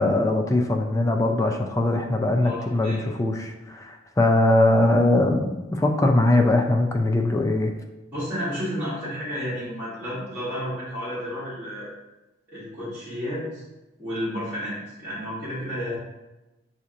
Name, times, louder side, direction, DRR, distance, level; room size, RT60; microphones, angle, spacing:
voice 1, 0.0-7.7, left 2 dB, 15° left, 3 dB, 0.3 m, -21 dB
voice 2, 2.4-3.0 8.1-11.9 12.5-13.6 14.0-16.0, equal, 10° right, -13 dB, 1.6 m, -31 dB
7.5 x 2.8 x 2.5 m, 1.0 s
head